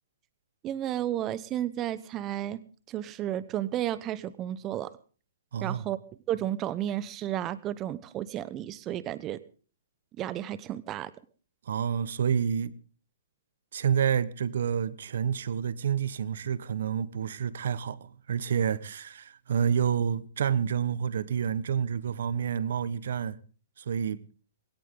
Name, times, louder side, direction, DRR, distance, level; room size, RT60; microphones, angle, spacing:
voice 1, 0.6-2.6 2.9-4.9 5.6-6.0 6.3-9.4 10.2-11.1, right 12 dB, 25° right, 0.9 m, -32 dB
voice 2, 5.5-5.9 11.7-12.7 13.7-23.4 23.8-24.2, right 8 dB, 65° right, 1.3 m, -29 dB
20.5 x 17.5 x 3.9 m
hypercardioid pair, 140°, 0 cm